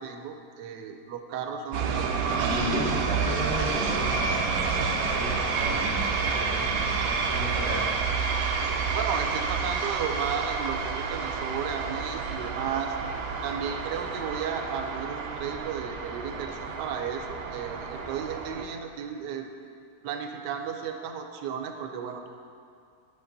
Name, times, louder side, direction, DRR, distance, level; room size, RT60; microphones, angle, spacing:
voice 1, 0.0-2.7 8.9-13.0 13.4-19.5 20.0-22.3, right 7 dB, 90° right, 5 dB, 1.2 m, -34 dB
sound 1, 1.7-18.6, right 5 dB, 70° right, 0.9 m, -29 dB
voice 2, 2.4-7.9, equal, 20° left, -9 dB, 1.9 m, -34 dB
11.0 x 5.7 x 2.6 m, 2.3 s
omnidirectional pair, 1.8 m